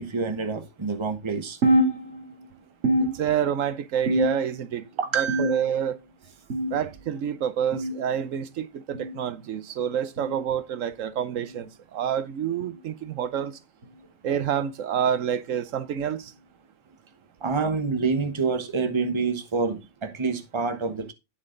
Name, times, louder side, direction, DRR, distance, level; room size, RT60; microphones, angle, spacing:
voice 1, 0.0-1.6 5.0-5.6 17.4-21.1, right 4 dB, 25° right, 1.0 m, -27 dB
sound 1, 1.6-2.5 2.8-3.6 4.1-4.7 5.3-5.9 6.5-6.9 7.7-8.0 8.9-9.2 10.2-10.4 11.4-11.6 12.6-12.8 13.8-14.0 15.0-15.1 16.3-16.4, right 1 dB, 60° right, 2.3 m, -26 dB
voice 2, 3.0-4.8 5.1-6.0 6.7-13.6 14.2-16.3, right 9 dB, 80° right, 1.1 m, -28 dB
9.1 x 7.4 x 3.8 m
omnidirectional pair, 1.3 m